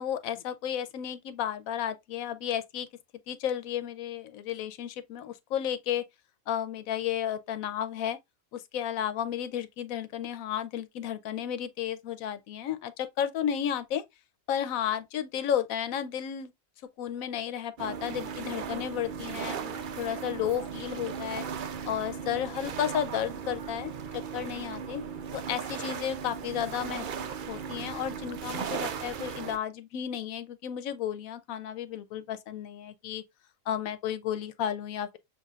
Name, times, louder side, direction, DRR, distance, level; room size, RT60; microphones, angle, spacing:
voice 1, 0.0-2.9 3.3-6.0 6.5-8.2 8.5-14.0 14.5-16.5 17.0-21.5 21.9-23.9 24.3-25.0 25.3-33.2 33.7-35.2, left 9 dB, 90° left, 1.1 m, -33 dB
sound 1, 17.8-29.6, right 7 dB, 70° right, 0.4 m, -37 dB
6.9 x 2.6 x 2.3 m
omnidirectional pair, 1.4 m